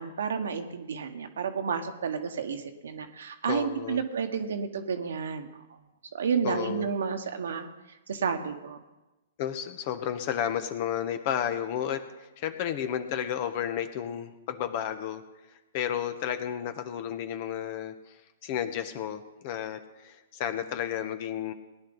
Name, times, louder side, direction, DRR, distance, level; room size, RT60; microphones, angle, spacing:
voice 1, 0.0-5.8 6.1-7.7 8.1-8.8, right 6 dB, 75° right, 7 dB, 1.3 m, -31 dB
voice 2, 3.5-4.0 6.4-6.9 9.4-15.2 15.7-21.5, left 9 dB, 45° left, 9 dB, 1.2 m, -32 dB
18.5 x 10.5 x 4.0 m, 1.1 s
hypercardioid pair, 125°, 0 cm